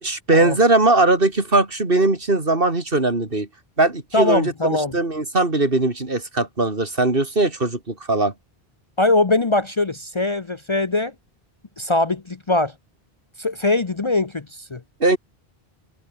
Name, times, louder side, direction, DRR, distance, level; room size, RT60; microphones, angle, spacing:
voice 1, 0.0-3.5 3.8-8.3 15.0-15.2, right 2 dB, 65° right, 3.5 m, -20 dB
voice 2, 4.1-4.9 9.0-11.1 11.8-12.7 13.4-14.8, left 2 dB, 30° left, 0.8 m, -21 dB
omnidirectional pair, 1.0 m